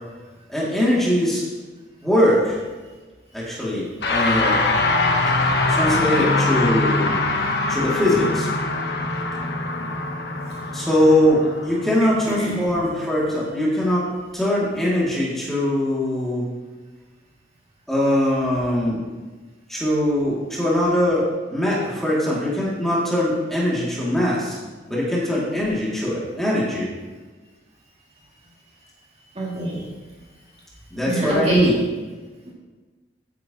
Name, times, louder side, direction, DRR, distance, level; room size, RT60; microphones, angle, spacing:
voice 1, 0.5-1.4 2.0-2.6 3.3-4.6 5.7-7.1 7.7-8.5 10.7-14.1 14.3-16.5 17.9-19.0 19.7-24.6 24.9-26.9 30.9-31.8, left 1 dB, ahead, -7 dB, 2.7 m, -21 dB
sound 1, 4.0-13.5, left 2 dB, 70° left, 1.2 m, -23 dB
voice 2, 12.0-12.6 29.3-29.9 31.0-31.9 32.4-32.5, right 1 dB, 35° right, -5 dB, 2.5 m, -25 dB
14.0 x 9.5 x 3.1 m, 1.3 s
head